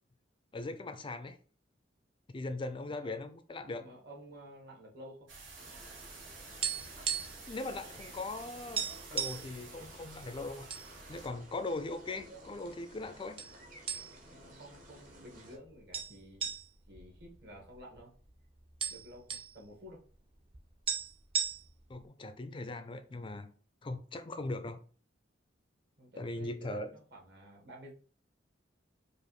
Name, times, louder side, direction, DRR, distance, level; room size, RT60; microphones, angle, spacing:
voice 1, 0.5-1.4 2.3-3.8 6.9-7.0 7.5-8.9 9.1-10.7 11.1-13.4 21.9-23.5 23.8-24.8 26.2-26.9, left 2 dB, 25° left, 0.4 m, -39 dB
voice 2, 3.6-5.3 9.8-9.9 14.3-16.5 16.9-18.1 18.9-20.0 26.0-27.9, equal, 60° right, 1.6 m, -52 dB
sound 1, 5.3-11.3, right 3 dB, 85° right, 1.3 m, -51 dB
sound 2, 5.6-15.6, right 1 dB, 45° right, 1.0 m, -55 dB
sound 3, 6.1-7.5 7.8-8.0 8.3-8.4 8.8-9.5 10.2-10.9 11.2-11.4 12.1-12.7 13.4-13.5 13.9-14.4 14.8-14.9 15.9-18.0 18.3-18.4 18.6-19.5 20.5-20.6 20.9-21.9, right 7 dB, 30° right, 0.5 m, -36 dB
4.9 x 2.5 x 3.0 m
head